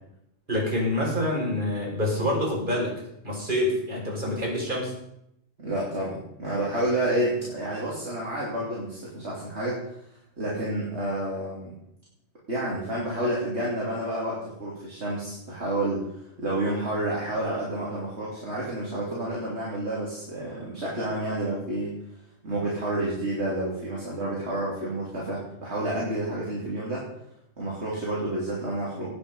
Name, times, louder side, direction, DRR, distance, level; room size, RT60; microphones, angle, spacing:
voice 1, 0.5-2.9 3.2-4.9, left 1 dB, 35° right, -3 dB, 5.6 m, -26 dB
voice 2, 5.6-9.9 10.4-11.7 12.5-22.0 22.4-27.0 27.6-29.2, right 1 dB, 50° right, -6 dB, 3.5 m, -29 dB
18.5 x 8.9 x 5.5 m, 0.78 s
omnidirectional pair, 1.4 m